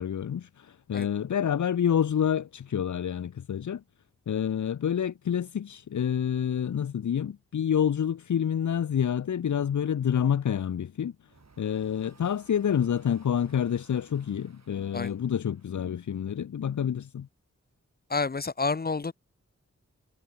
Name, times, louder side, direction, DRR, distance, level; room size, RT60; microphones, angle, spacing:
voice 1, 0.0-3.8 4.3-11.1 11.6-17.3, left 8 dB, 75° left, 0.6 m, -28 dB
sound 1, 11.2-16.4, right 4 dB, 65° right, 5.2 m, -60 dB
voice 2, 18.1-19.1, left 4 dB, 30° left, 0.7 m, -29 dB
cardioid pair, 45°, 30 cm